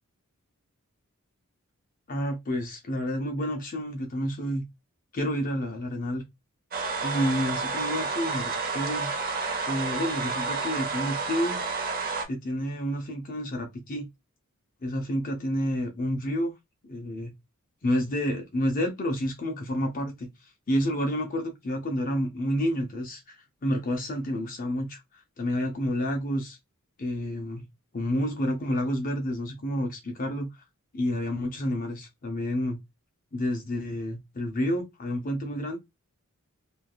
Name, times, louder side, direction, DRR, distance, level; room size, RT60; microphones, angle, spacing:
voice 1, 2.1-4.7 5.1-6.2 7.0-9.1 9.7-11.6 12.3-14.1 14.8-16.5 16.8-17.3 17.8-23.4 23.6-26.6 27.0-27.7 27.9-30.5 30.9-32.8 33.3-35.8, equal, 40° left, 0.5 m, -29 dB
sound 1, 6.7-12.2, right 4 dB, 40° right, 0.7 m, -30 dB
3.2 x 2.3 x 2.3 m
head